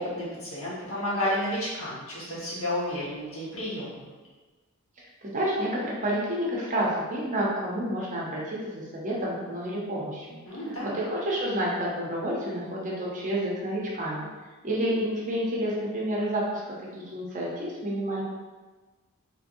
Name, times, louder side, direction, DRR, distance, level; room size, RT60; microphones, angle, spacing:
voice 1, 0.0-4.1 10.4-11.0, left 1 dB, 65° left, -9 dB, 1.4 m, -31 dB
voice 2, 5.2-10.4 10.8-14.3 14.6-18.2, right 1 dB, 35° right, -4 dB, 0.7 m, -29 dB
3.3 x 3.0 x 2.6 m, 1.3 s
head